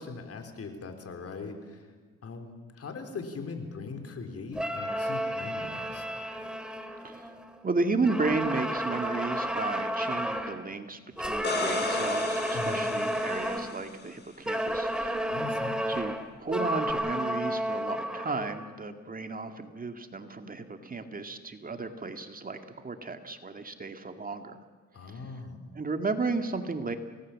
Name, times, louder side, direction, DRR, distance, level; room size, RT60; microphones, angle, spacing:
voice 1, 0.0-1.8 2.2-6.1 12.5-12.8 15.3-15.8 24.9-25.6, left 4 dB, 50° left, 6 dB, 4.1 m, -40 dB
sound 1, 4.5-7.6 8.0-10.6 11.2-13.8 14.5-18.7, equal, 5° right, 2.6 m, -32 dB
voice 2, 7.0-7.4 7.6-15.3 15.9-24.6 25.1-25.3 25.7-27.0, right 3 dB, 30° right, 7 dB, 2.0 m, -33 dB
sound 2, 11.2-14.1 16.9-17.0, left 3 dB, 35° left, 4.2 m, -35 dB
29.0 x 18.5 x 7.5 m, 1.4 s
cardioid pair, 90°, 30 cm